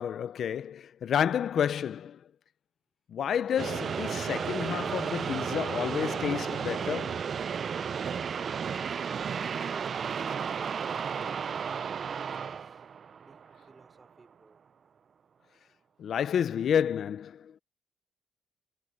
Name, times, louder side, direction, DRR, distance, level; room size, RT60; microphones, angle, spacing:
voice 1, 0.0-2.2 3.1-7.2 16.0-17.5, left 8 dB, 60° left, 0.6 m, -30 dB
sound 1, 3.6-13.8, right 7 dB, 50° right, 0.6 m, -33 dB
voice 2, 10.5-12.9 13.1-14.6, right 3 dB, 25° right, 4.7 m, -58 dB
cardioid pair, 90°, 0 cm